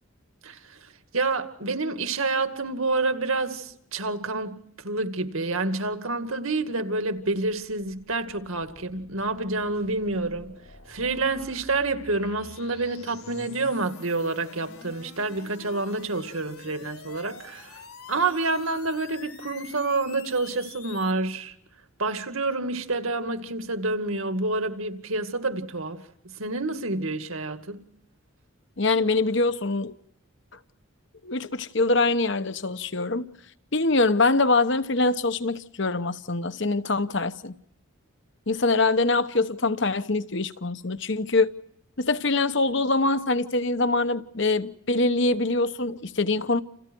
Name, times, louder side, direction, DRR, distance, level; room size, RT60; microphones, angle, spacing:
voice 1, 0.4-10.6 10.9-17.8 18.1-21.6 22.0-27.8, right 3 dB, 75° right, 2.3 m, -28 dB
sound 1, 7.2-21.1, left 4 dB, 80° left, 4.9 m, -47 dB
voice 2, 28.8-30.0 31.2-33.3 33.7-37.6 38.5-41.5 42.0-46.6, left 3 dB, 55° left, 1.1 m, -24 dB
30.0 x 28.5 x 4.6 m
head